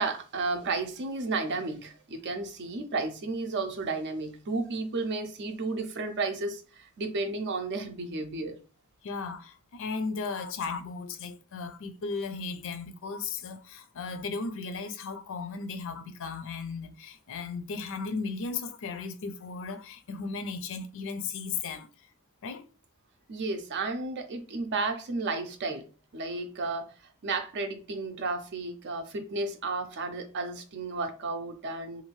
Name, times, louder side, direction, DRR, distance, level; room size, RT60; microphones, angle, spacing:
voice 1, 0.0-8.6 23.3-25.8 26.1-26.9 27.2-32.0, right 3 dB, 50° right, 0.5 m, -32 dB
voice 2, 9.0-21.9 22.4-22.7, left 4 dB, 60° left, 0.4 m, -36 dB
2.6 x 2.4 x 3.1 m
head